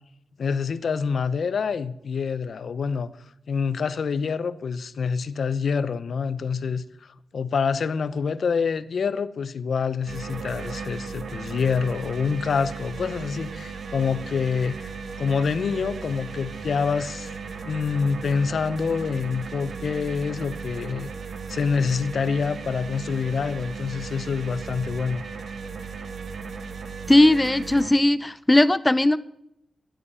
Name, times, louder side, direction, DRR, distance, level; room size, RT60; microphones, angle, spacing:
voice 1, 0.4-3.1 3.5-6.8 7.3-14.9 15.2-17.4 17.6-21.1 21.5-25.2, left 5 dB, 60° left, 0.7 m, -26 dB
sound 1, 10.1-27.9, right 5 dB, 65° right, 1.6 m, -36 dB
voice 2, 27.1-29.2, left 1 dB, 15° left, 0.4 m, -18 dB
11.5 x 9.0 x 10.0 m
wide cardioid pair, 130°, 0 cm